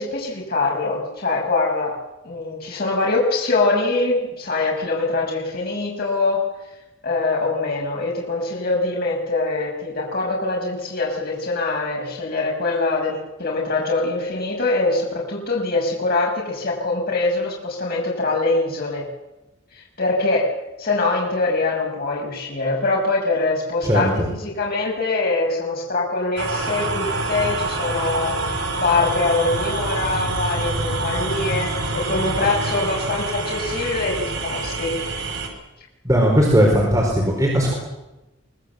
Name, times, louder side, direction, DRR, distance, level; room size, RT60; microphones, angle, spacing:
voice 1, 0.0-1.9 2.2-6.4 7.0-19.1 19.8-20.5 20.8-28.4 28.8-34.9, left 3 dB, 50° left, -2 dB, 5.9 m, -23 dB
voice 2, 23.8-24.3 36.0-37.8, equal, 15° right, -2 dB, 4.7 m, -18 dB
sound 1, 26.4-35.5, right 2 dB, 70° right, 5.5 m, -26 dB
24.0 x 20.0 x 8.1 m, 1.0 s
head